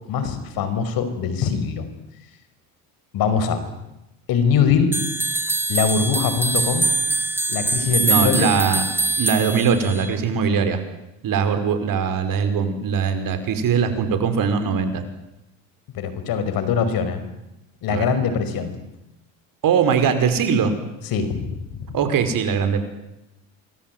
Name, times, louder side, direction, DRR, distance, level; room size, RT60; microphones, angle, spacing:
voice 1, 0.1-1.9 3.1-3.6 4.3-5.0 5.7-6.9 7.5-8.5 15.9-17.2 17.8-18.8 21.1-21.6, left 6 dB, 65° left, 11 dB, 5.4 m, -22 dB
sound 1, 4.9-10.1, right 2 dB, 5° right, 1.4 m, -23 dB
voice 2, 8.0-8.8 9.2-10.8 11.2-15.0 17.9-18.1 19.6-20.8 21.9-22.8, right 6 dB, 55° right, 9 dB, 5.3 m, -21 dB
28.0 x 22.5 x 9.4 m, 0.91 s
supercardioid pair, 80°, 39 cm